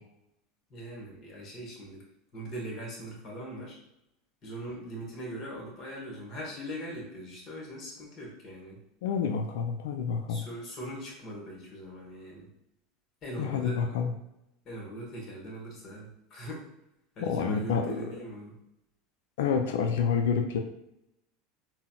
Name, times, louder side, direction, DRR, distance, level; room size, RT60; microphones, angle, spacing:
voice 1, 0.7-2.0 2.3-3.8 4.4-8.8 10.3-12.5 13.2-14.0 14.6-16.6 17.2-18.5, right 1 dB, 45° left, -2 dB, 1.2 m, -41 dB
voice 2, 9.0-10.4 13.4-14.1 17.2-18.0 19.4-20.6, left 6 dB, 75° left, 5 dB, 0.4 m, -28 dB
3.9 x 2.0 x 2.3 m, 0.84 s
hypercardioid pair, 85°, 0 cm